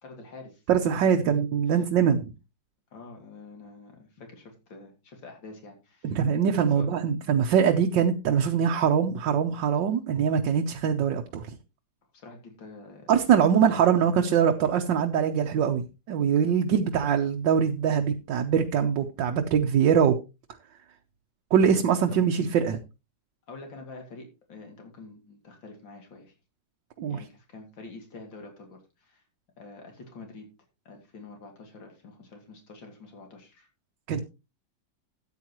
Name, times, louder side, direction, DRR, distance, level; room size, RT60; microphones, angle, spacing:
voice 1, 0.0-0.6 1.0-1.4 1.7-1.8 2.9-6.2 6.6-6.9 12.1-13.5 13.9-14.0 22.1-22.2 23.5-26.3 27.1-29.2 29.6-30.5 30.8-33.7, left 3 dB, 80° left, 3 dB, 3.2 m, -46 dB
voice 2, 0.7-2.2 6.0-11.5 13.1-20.2 21.5-22.8 27.0-27.2 34.1-34.2, right 7 dB, 75° right, 3 dB, 1.6 m, -23 dB
13.5 x 9.2 x 3.0 m, 0.28 s
omnidirectional pair, 2.0 m